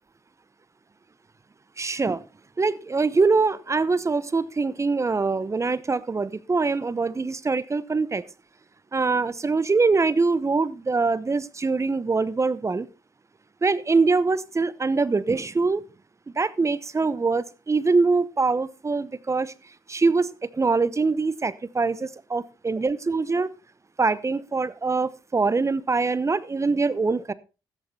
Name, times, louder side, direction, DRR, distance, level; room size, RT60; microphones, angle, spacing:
voice 1, 1.8-2.2 2.6-8.2 8.9-12.9 13.6-15.8 16.3-19.5 19.9-23.5 24.0-27.3, right 4 dB, 30° right, 17 dB, 0.9 m, -23 dB
13.5 x 9.6 x 4.1 m, 0.32 s
supercardioid pair, 55°, 10 cm